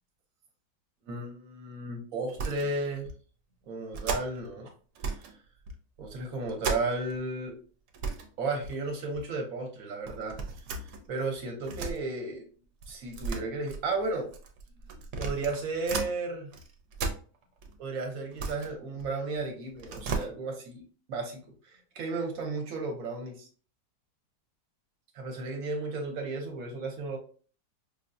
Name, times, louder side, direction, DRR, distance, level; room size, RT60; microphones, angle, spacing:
voice 1, 1.1-3.1 3.7-4.7 5.0-5.4 6.0-7.5 8.4-10.4 10.8-12.5 12.9-14.3 15.2-16.5 17.8-20.8 21.1-23.5 25.1-27.2, right 3 dB, 60° right, 2 dB, 1.2 m, -34 dB
sound 1, 2.3-2.7 3.0-3.2 3.9-4.5 5.0-5.4 5.7-7.2 7.5-7.6 7.9-8.3 8.6-9.3 10.1-12.0 12.8-16.1 16.5-17.7 18.1-19.4 19.7-20.3, right 4 dB, 75° right, 1.2 m, -35 dB
5.2 x 2.3 x 2.6 m, 0.41 s
omnidirectional pair, 1.8 m